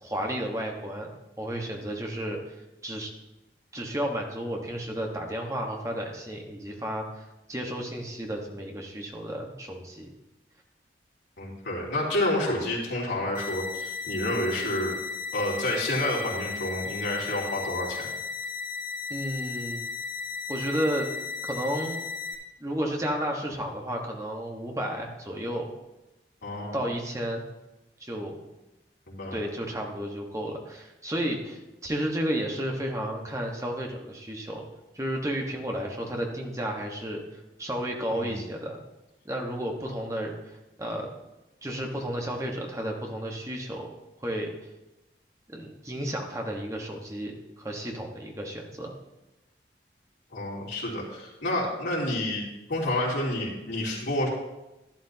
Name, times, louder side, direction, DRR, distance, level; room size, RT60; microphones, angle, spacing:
voice 1, 0.0-2.5 2.8-3.1 3.7-10.1 19.1-19.8 20.5-21.1 21.5-22.0 22.6-25.7 26.7-27.4 28.0-28.4 29.3-34.6 34.9-37.2 37.6-38.8 39.2-40.3 40.8-41.1 41.6-43.9 44.2-44.5 45.5-48.9, equal, 15° right, 1 dB, 1.3 m, -32 dB
voice 2, 11.4-14.9 15.3-18.1 26.4-26.8 29.1-29.4 38.1-38.4 50.3-52.4 52.7-54.3, left 1 dB, 80° left, -5 dB, 3.5 m, -29 dB
sound 1, 13.3-22.3, left 5 dB, 55° left, 2.0 m, -35 dB
12.0 x 11.5 x 2.9 m, 0.98 s
head